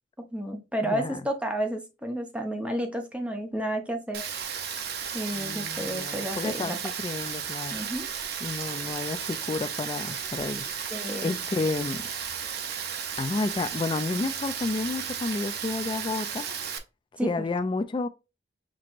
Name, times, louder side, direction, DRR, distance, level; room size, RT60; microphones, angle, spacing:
voice 1, 0.3-4.2 5.1-6.8 7.7-8.1 10.9-11.4 17.2-17.5, right 1 dB, 5° right, 0.6 m, -31 dB
voice 2, 0.8-1.2 5.3-7.8 8.4-10.7 11.2-12.0 13.2-16.6 17.2-18.1, left 3 dB, 25° left, 0.3 m, -31 dB
Rain, 4.1-16.8, right 7 dB, 60° right, 0.7 m, -34 dB
6.1 x 2.9 x 2.5 m
head